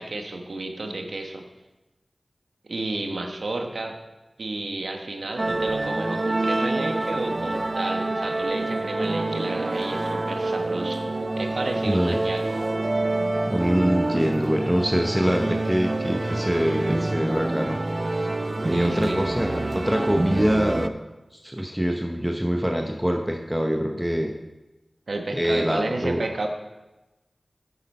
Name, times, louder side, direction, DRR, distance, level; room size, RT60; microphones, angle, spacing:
voice 1, 0.0-1.4 2.6-4.0 4.4-11.0 11.3-12.4 18.7-19.2 21.6-21.7 25.1-26.5, right 2 dB, 85° right, 3 dB, 1.3 m, -31 dB
sound 1, 5.4-20.9, right 2 dB, 40° right, 0.5 m, -27 dB
voice 2, 11.8-12.2 13.5-17.8 18.7-20.9 21.3-24.3 25.3-26.2, equal, 5° right, 2 dB, 0.8 m, -24 dB
9.7 x 8.3 x 5.4 m, 1.0 s
wide cardioid pair, 70°, 0 cm